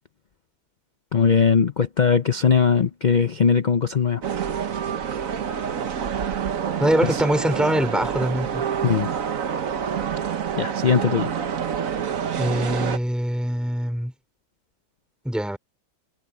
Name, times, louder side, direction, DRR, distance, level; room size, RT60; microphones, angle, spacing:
voice 1, 1.1-4.2 7.0-7.2 8.8-9.1 10.6-11.3, left 6 dB, 50° left, 0.5 m, -20 dB
sound 1, 4.2-13.0, right 8 dB, 55° right, 1.4 m, -27 dB
voice 2, 6.8-8.6 12.4-14.1 15.2-15.6, equal, ahead, 4.7 m, -23 dB
omnidirectional pair, 1.8 m